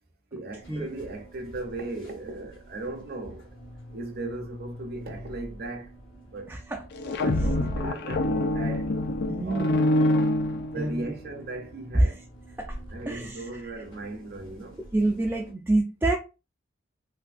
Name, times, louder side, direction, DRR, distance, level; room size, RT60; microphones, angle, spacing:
voice 1, 0.3-3.6 3.9-5.9 6.2-6.5 7.2-8.9 9.4-9.9 10.7-12.2 12.9-14.8, right 2 dB, 50° right, 0.7 m, -37 dB
sound 1, 0.6-15.5, equal, 80° left, 1.7 m, -47 dB
voice 2, 6.5-6.8 9.3-9.9 10.8-11.1 11.9-12.0 12.6-12.8 13.1-13.4 14.9-16.2, right 2 dB, 10° right, 0.4 m, -26 dB
sound 2, 6.9-11.2, left 1 dB, 55° left, 0.4 m, -25 dB
3.4 x 2.7 x 2.4 m
head